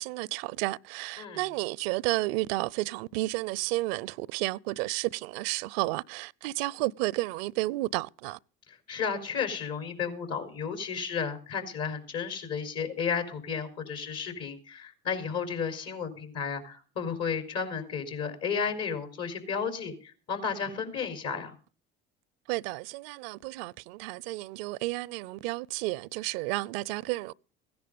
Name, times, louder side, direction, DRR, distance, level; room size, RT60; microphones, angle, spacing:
voice 1, 0.0-8.4 22.5-27.3, right 20 dB, 75° right, 0.6 m, -32 dB
voice 2, 8.7-21.5, left 6 dB, 55° left, 4.6 m, -33 dB
16.0 x 10.5 x 5.3 m
hypercardioid pair, 75°, 29 cm